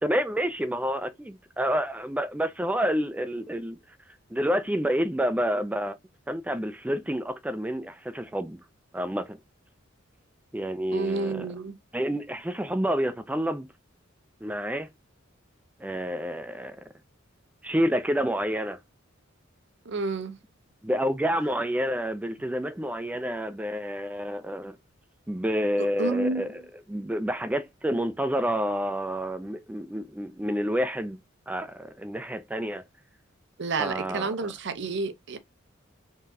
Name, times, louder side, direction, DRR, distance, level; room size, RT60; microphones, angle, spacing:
voice 1, 0.0-3.8 4.3-5.9 6.3-8.6 8.9-9.4 10.5-11.5 11.9-13.7 14.4-14.9 15.8-16.8 17.6-18.8 20.8-24.8 25.3-26.6 26.9-31.2 31.5-32.8 33.8-34.5, equal, 5° right, 0.4 m, -29 dB
voice 2, 10.9-11.8 19.9-20.4 25.8-26.4 33.6-35.4, right 3 dB, 60° right, 0.7 m, -30 dB
3.7 x 3.7 x 2.7 m
head